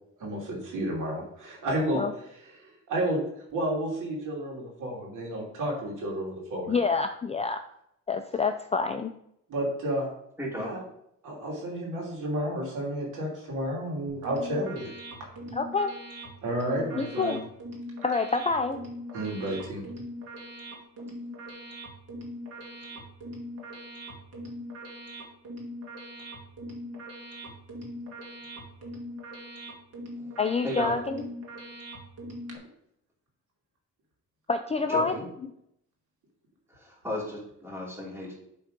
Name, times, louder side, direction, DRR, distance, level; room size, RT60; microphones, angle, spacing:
voice 1, 0.2-2.1 2.6-6.8 9.5-10.1 10.5-10.8 11.2-14.9 16.4-17.4 19.1-19.8, right 1 dB, 70° right, -2 dB, 2.5 m, -31 dB
voice 2, 6.7-7.6 8.1-9.1 15.5-15.9 16.9-17.4 18.0-18.8 30.4-31.3 34.5-35.2, left 4 dB, 20° left, 6 dB, 0.3 m, -27 dB
voice 3, 10.4-10.7 30.6-30.9 34.9-35.3 36.7-38.3, left 1 dB, 10° right, -5 dB, 2.9 m, -34 dB
sound 1, 14.1-32.6, equal, 50° right, 2.2 m, -42 dB
7.9 x 3.8 x 5.1 m, 0.75 s
cardioid pair, 130°, 32 cm